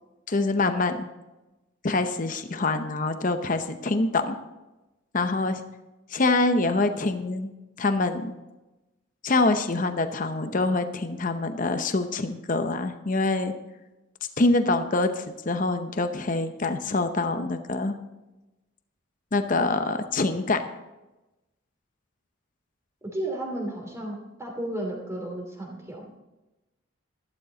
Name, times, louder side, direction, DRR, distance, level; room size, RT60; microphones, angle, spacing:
voice 1, 0.3-1.0 1.8-4.4 5.1-5.6 6.1-7.5 7.8-8.3 9.2-13.5 14.4-17.9 19.3-20.6, left 2 dB, 40° left, 8 dB, 0.8 m, -25 dB
voice 2, 23.0-26.1, right 1 dB, 15° right, 0 dB, 2.7 m, -33 dB
12.0 x 12.0 x 3.9 m, 1.0 s
head